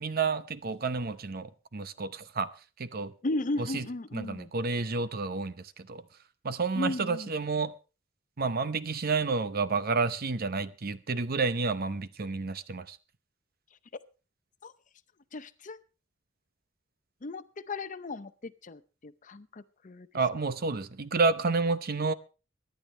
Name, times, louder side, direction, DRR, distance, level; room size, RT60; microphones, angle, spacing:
voice 1, 0.0-2.5 2.8-3.1 3.6-3.8 4.1-5.5 5.9-6.0 6.4-7.7 8.4-13.0 20.1-22.1, right 4 dB, 50° right, 0.7 m, -30 dB
voice 2, 3.2-4.5 6.7-7.3 14.6-14.7 15.3-15.8 17.2-20.1, left 2 dB, 40° left, 0.6 m, -36 dB
23.5 x 10.5 x 3.2 m
head